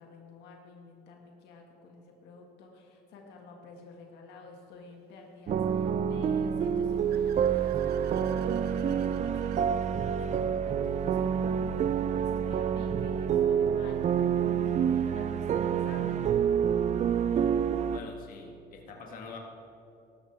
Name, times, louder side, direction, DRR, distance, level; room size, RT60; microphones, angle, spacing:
voice 1, 0.0-16.2, left 4 dB, 85° left, 1 dB, 1.8 m, -50 dB
sound 1, 5.5-18.0, right 8 dB, 45° right, 0.5 m, -27 dB
Car / Accelerating revving vroom, 6.5-9.7, right 9 dB, 75° right, 1.0 m, -53 dB
voice 2, 17.9-19.4, left 4 dB, 55° left, 1 dB, 1.9 m, -45 dB
17.5 x 13.0 x 3.4 m, 2.7 s
cardioid pair, 110°, 17 cm